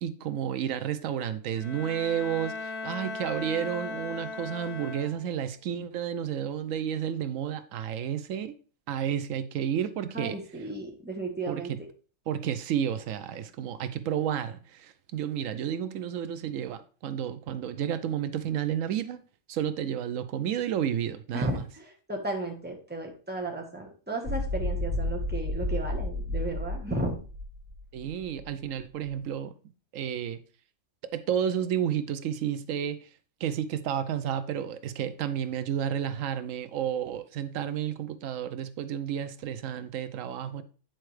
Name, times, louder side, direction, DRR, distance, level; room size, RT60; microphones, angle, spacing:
voice 1, 0.0-8.5 8.9-10.7 11.5-11.8 12.3-19.2 19.5-21.6 27.9-29.5 29.9-30.4 31.0-33.1 33.4-40.6, right 9 dB, 90° right, 1.0 m, -31 dB
Bowed string instrument, 1.5-5.5, left 3 dB, 70° left, 3.5 m, -38 dB
voice 2, 10.1-11.7 21.3-27.1, right 1 dB, 10° right, 1.2 m, -34 dB
sound 1, 24.2-28.5, left 2 dB, 70° right, 2.1 m, -32 dB
9.0 x 4.5 x 3.2 m
omnidirectional pair, 1.3 m